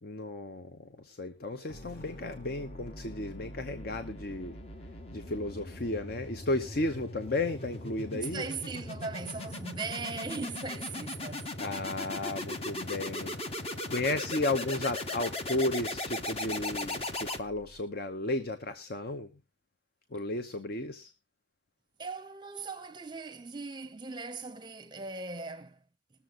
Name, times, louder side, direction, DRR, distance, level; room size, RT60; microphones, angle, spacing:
voice 1, 0.0-4.6 5.1-8.4 11.6-19.3 20.1-21.1, left 2 dB, 55° left, 0.8 m, -34 dB
sound 1, 1.7-17.8, left 2 dB, 35° left, 1.1 m, -39 dB
voice 2, 8.1-11.5 22.0-25.8, right 4 dB, 25° right, 0.7 m, -39 dB
21.0 x 7.1 x 3.7 m
head